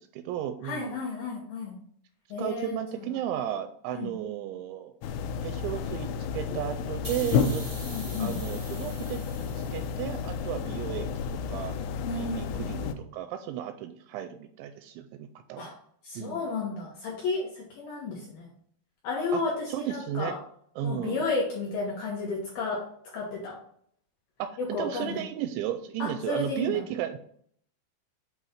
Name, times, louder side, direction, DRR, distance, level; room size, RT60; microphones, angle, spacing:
voice 1, 0.0-1.0 2.4-4.9 5.4-7.7 8.2-9.2 9.7-11.1 11.5-11.9 12.2-15.7 16.2-16.4 19.3-19.4 19.7-20.3 20.8-21.2 24.4-27.2, right 11 dB, 85° right, 8 dB, 2.7 m, -34 dB
voice 2, 0.6-1.8 2.3-3.2 3.9-4.1 7.9-8.4 12.0-12.5 15.6-15.7 16.0-18.5 19.0-20.4 20.8-22.8 23.1-23.6 24.6-25.2 26.0-26.8, left 3 dB, 70° left, -3 dB, 2.2 m, -32 dB
sound 1, 5.0-12.9, left 6 dB, 90° left, 2.4 m, -31 dB
sound 2, 7.0-10.4, right 1 dB, 25° right, 0.6 m, -44 dB
7.7 x 3.1 x 5.6 m, 0.65 s
omnidirectional pair, 5.5 m